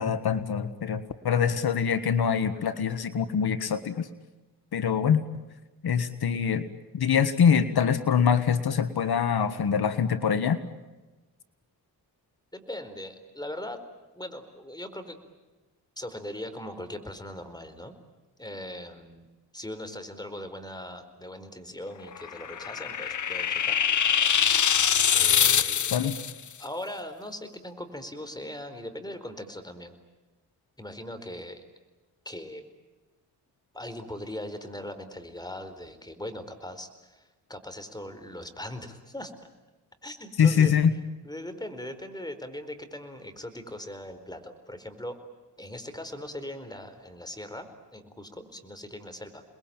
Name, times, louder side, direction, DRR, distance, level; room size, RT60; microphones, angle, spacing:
voice 1, 0.0-4.1 4.7-5.2 5.8-6.6 6.9-10.6 25.9-26.2 40.4-40.9, left 7 dB, 70° left, 11 dB, 1.7 m, -24 dB
voice 2, 12.5-13.8 14.2-15.2 16.0-17.9 18.4-19.3 19.5-23.8 25.1-26.1 26.6-30.0 30.8-31.6 32.2-32.6 33.7-39.3 40.0-40.7 41.2-45.2 45.6-49.4, left 1 dB, 10° left, 9 dB, 4.3 m, -40 dB
sound 1, 22.2-26.3, left 8 dB, 50° left, 0.9 m, -24 dB
29.0 x 21.5 x 8.9 m, 1.2 s
cardioid pair, 80°, 39 cm